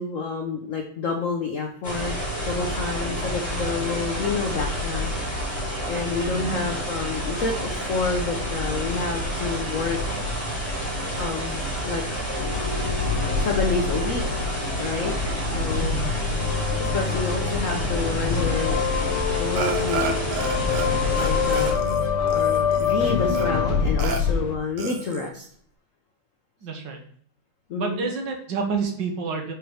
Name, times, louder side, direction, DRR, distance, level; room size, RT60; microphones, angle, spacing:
voice 1, 0.0-2.2 2.4-5.1 5.9-10.0 11.2-12.0 13.4-14.2 14.8-15.1 15.5-16.0 16.8-18.8 19.4-20.2 21.2-21.8 22.2-25.5 27.7-28.1, left 4 dB, 65° left, 2 dB, 0.8 m, -29 dB
sound 1, 1.8-21.7, equal, 15° left, 3.1 m, -29 dB
voice 2, 6.2-6.6 15.7-16.1 26.6-27.0 27.7-29.5, right 5 dB, 60° right, 3 dB, 1.6 m, -29 dB
sound 2, 12.4-24.6, left 5 dB, 85° left, 1.6 m, -25 dB
Burping eructation, 19.6-20.9 21.1-23.0 23.3-23.5 24.0-24.2 24.8-25.3, right 5 dB, 85° right, 1.8 m, -31 dB
5.3 x 4.6 x 4.7 m, 0.62 s
omnidirectional pair, 2.4 m